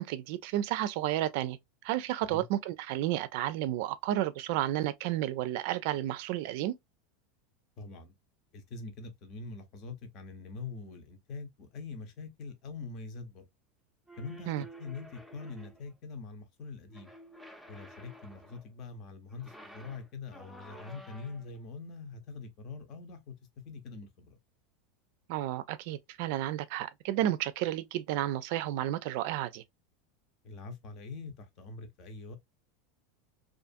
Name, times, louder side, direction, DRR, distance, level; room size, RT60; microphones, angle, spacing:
voice 1, 0.0-1.6 1.8-6.8 14.5-14.6 25.3-29.6, right 13 dB, 65° right, 0.4 m, -32 dB
voice 2, 7.8-8.1 8.5-13.5 14.2-17.1 17.7-23.3 23.6-24.4 30.4-32.4, left 4 dB, 50° left, 0.8 m, -44 dB
sound 1, 14.1-15.9 16.9-18.7 19.3-21.6, right 1 dB, 5° left, 0.5 m, -51 dB
2.5 x 2.4 x 2.5 m
supercardioid pair, 115°, 0 cm